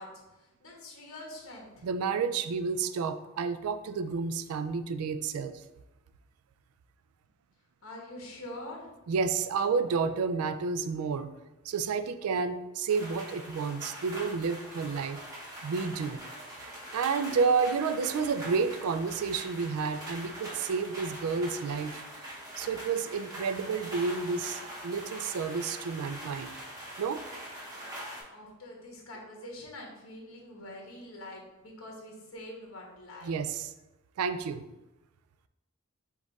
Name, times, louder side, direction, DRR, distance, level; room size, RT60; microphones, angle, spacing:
voice 1, 0.0-1.9 7.8-8.9 28.3-33.4, left 1 dB, 65° left, -1 dB, 1.1 m, -45 dB
voice 2, 1.8-5.6 9.1-11.3 11.7-15.2 15.6-22.0 22.6-26.5 27.0-27.3 33.2-33.7 34.2-34.6, right 5 dB, 80° right, 11 dB, 0.3 m, -30 dB
sound 1, 12.9-28.2, equal, 15° right, 1.0 m, -43 dB
5.1 x 2.5 x 4.0 m, 0.99 s
head